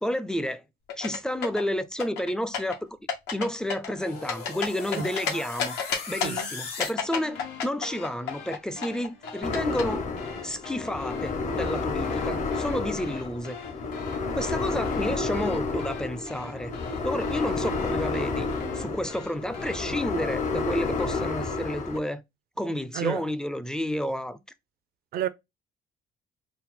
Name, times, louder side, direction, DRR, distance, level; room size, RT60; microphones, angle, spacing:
voice 1, 0.0-0.6 1.0-2.9 3.3-5.8 6.1-10.1 10.4-13.6 14.3-16.7 17.0-18.5 18.7-22.2 22.6-24.4, equal, 5° left, 0.4 m, -30 dB
sound 1, 0.9-1.6 2.0-2.8 3.1-3.5 3.7-5.3 5.6-6.4 6.8-8.6 8.8-9.8, left 7 dB, 85° left, 1.3 m, -29 dB
sound 2, 4.0-19.9, left 5 dB, 70° left, 2.0 m, -42 dB
voice 2, 5.0-5.1 6.2-6.5 22.9-23.2 25.1-25.3, right 11 dB, 65° right, 0.5 m, -30 dB
sound 3, 9.4-22.0, left 4 dB, 45° left, 0.9 m, -30 dB
4.1 x 2.0 x 4.1 m
cardioid pair, 110°, 17 cm